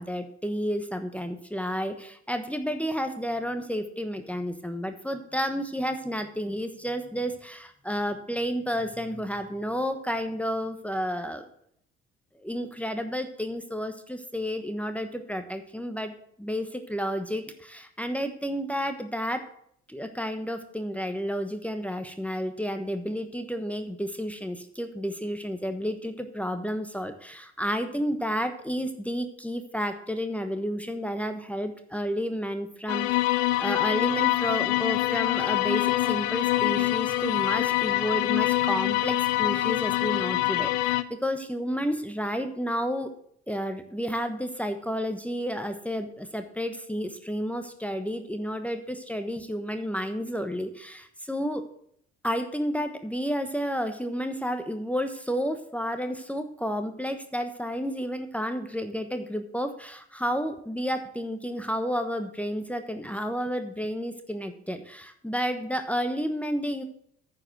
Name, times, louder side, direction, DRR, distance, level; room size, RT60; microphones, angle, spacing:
voice 1, 0.0-11.4 12.4-16.1 16.4-19.5 19.9-43.1 43.5-51.6 52.2-66.8, equal, 5° left, 7 dB, 1.1 m, -31 dB
sound 1, 32.9-41.0, left 17 dB, 75° left, 0.6 m, -25 dB
9.6 x 4.9 x 7.8 m, 0.68 s
hypercardioid pair, 60°, 29 cm